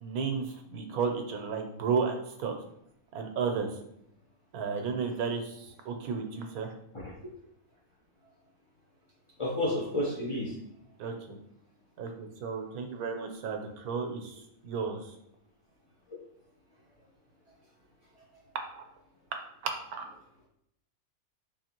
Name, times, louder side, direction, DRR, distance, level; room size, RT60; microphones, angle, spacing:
voice 1, 0.0-2.6 3.1-3.8 4.5-6.7 11.0-11.4 12.0-14.4 14.6-15.1 18.7-18.8 19.6-20.1, right 5 dB, 80° right, 4 dB, 1.1 m, -33 dB
voice 2, 9.4-10.5, left 1 dB, 35° left, -5 dB, 0.5 m, -30 dB
3.4 x 3.3 x 2.9 m, 0.76 s
omnidirectional pair, 1.5 m